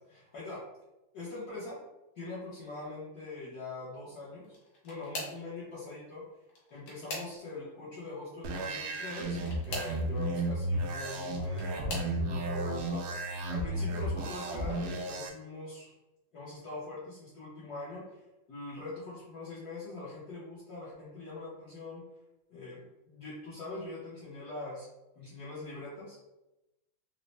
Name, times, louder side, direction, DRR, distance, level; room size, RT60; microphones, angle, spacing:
voice 1, 0.1-0.6 1.1-1.8 2.1-4.6 4.8-6.2 6.7-9.4 9.6-13.0 13.5-15.9 16.3-18.2 18.5-22.0 22.5-22.8 23.1-24.9 25.1-26.3, left 2 dB, 60° left, -9 dB, 1.2 m, -43 dB
sound 1, 4.4-5.5 6.4-7.7 9.3-10.0 11.1-12.2 12.9-13.3 13.7-13.8 15.2-15.3, left 1 dB, 90° left, 1.8 m, -42 dB
sound 2, 8.4-15.3, right 1 dB, 75° right, 0.9 m, -33 dB
4.0 x 2.1 x 3.1 m, 0.98 s
omnidirectional pair, 2.2 m